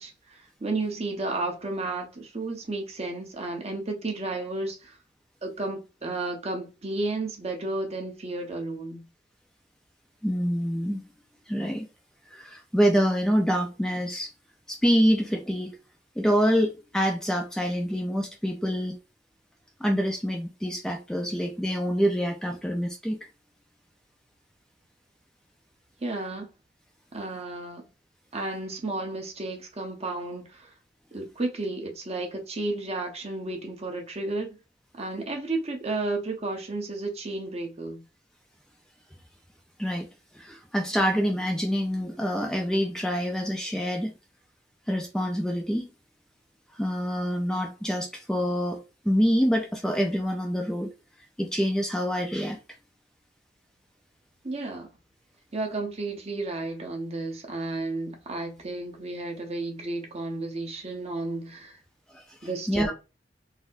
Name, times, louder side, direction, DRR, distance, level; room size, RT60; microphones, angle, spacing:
voice 1, 0.0-5.0 5.4-9.1 26.0-26.5 27.1-27.8 28.3-30.7 31.1-34.6 34.9-38.0 54.4-54.9 55.5-61.8 62.4-62.9, right 2 dB, 35° right, 0.9 m, -32 dB
voice 2, 10.2-11.0 11.5-11.9 12.3-14.3 14.7-15.7 16.2-19.0 19.8-23.2 39.8-40.1 40.3-44.1 44.9-45.9 46.7-50.9 51.4-52.6 62.1-62.4 62.7-62.9, equal, 5° left, 0.4 m, -26 dB
4.1 x 2.0 x 2.5 m
head